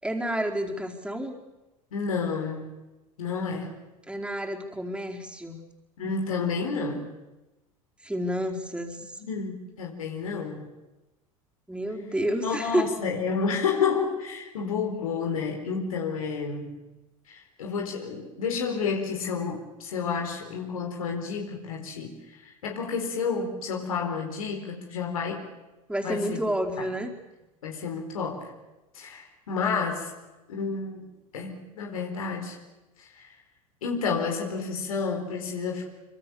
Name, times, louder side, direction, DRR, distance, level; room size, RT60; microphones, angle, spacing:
voice 1, 0.0-1.4 4.1-5.6 8.0-9.2 11.7-12.9 25.9-27.1, right 1 dB, 5° right, 1 dB, 4.6 m, -30 dB
voice 2, 1.9-2.7 3.2-3.8 6.0-7.1 9.2-10.7 12.4-16.7 17.3-25.5 26.0-26.4 26.8-26.9 27.6-28.5 28.9-30.1 30.5-32.6 33.0-33.3 33.8-35.9, left 5 dB, 75° left, 2 dB, 4.4 m, -30 dB
26.5 x 25.5 x 7.2 m, 1.0 s
figure-of-eight pair, 70°, 18 cm